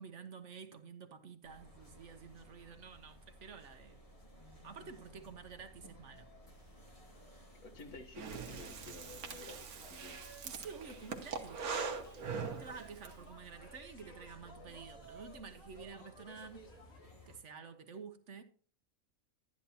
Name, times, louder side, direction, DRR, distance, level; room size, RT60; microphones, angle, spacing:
voice 1, 0.0-4.0 4.6-6.3 10.4-11.7 12.4-16.6 17.3-18.4, right 5 dB, 60° right, 1.1 m, -50 dB
sound 1, 1.4-17.4, equal, 25° left, 1.9 m, -57 dB
voice 2, 7.5-10.2, left 3 dB, 85° left, 1.7 m, -52 dB
Breathing, 8.1-13.1, right 5 dB, 80° right, 1.5 m, -42 dB
sound 2, 9.8-17.0, equal, 65° left, 2.2 m, -57 dB
11.5 x 10.0 x 2.8 m
omnidirectional pair, 1.5 m